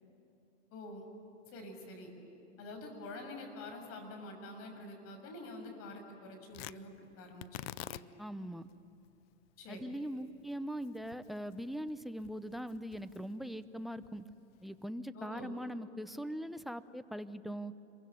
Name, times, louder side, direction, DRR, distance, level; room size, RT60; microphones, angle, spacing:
voice 1, 0.7-1.1 1.5-2.1 2.6-8.0 9.6-9.8 15.1-15.6, left 2 dB, 40° left, 4 dB, 6.7 m, -47 dB
Tearing, 6.5-14.9, left 16 dB, 55° left, 0.7 m, -51 dB
voice 2, 8.2-8.7 9.7-14.2 14.6-17.7, equal, ahead, 12 dB, 0.7 m, -41 dB
26.5 x 23.5 x 9.5 m, 2.9 s
hypercardioid pair, 110°, 34 cm